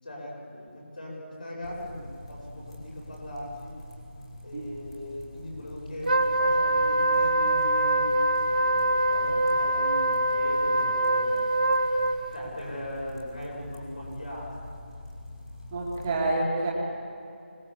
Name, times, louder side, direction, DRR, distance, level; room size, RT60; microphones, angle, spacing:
voice 1, 0.0-3.7 4.4-8.1 8.5-11.3 12.3-14.5, left 1 dB, 45° left, -4 dB, 7.5 m, -39 dB
sound 1, 1.6-16.2, left 1 dB, 30° left, 3.3 m, -45 dB
Wind instrument woodwind instrument, 6.0-12.4, right 1 dB, 45° right, 1.3 m, -24 dB
voice 2, 15.7-16.7, right 2 dB, 15° right, -3 dB, 2.0 m, -27 dB
25.0 x 18.5 x 7.4 m, 2.5 s
figure-of-eight pair, 175°, 7 cm